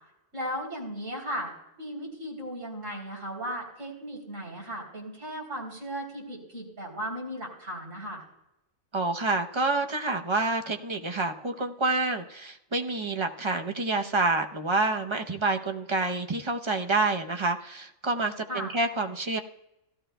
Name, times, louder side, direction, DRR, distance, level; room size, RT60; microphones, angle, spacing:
voice 1, 0.3-8.2 18.5-18.7, equal, 65° right, -2 dB, 3.8 m, -36 dB
voice 2, 8.9-19.4, right 3 dB, 30° right, 5 dB, 0.6 m, -28 dB
17.0 x 13.0 x 2.2 m, 0.85 s
omnidirectional pair, 1.4 m